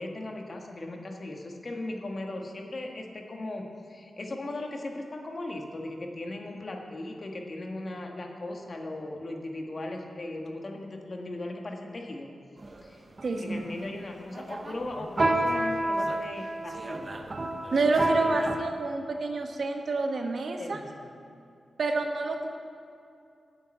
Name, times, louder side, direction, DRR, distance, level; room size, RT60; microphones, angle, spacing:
voice 1, 0.0-12.3 12.8-13.0 13.3-17.2 20.6-21.1, left 2 dB, 45° left, 2 dB, 1.6 m, -38 dB
sound 1, 12.6-12.9 13.2-13.7 14.4-18.6, right 1 dB, 35° right, 0.8 m, -29 dB
voice 2, 13.2-13.6 17.7-20.8 21.8-22.5, right 3 dB, 65° right, 4 dB, 1.1 m, -28 dB
8.7 x 7.1 x 8.8 m, 2.5 s
cardioid pair, 75°, 0 cm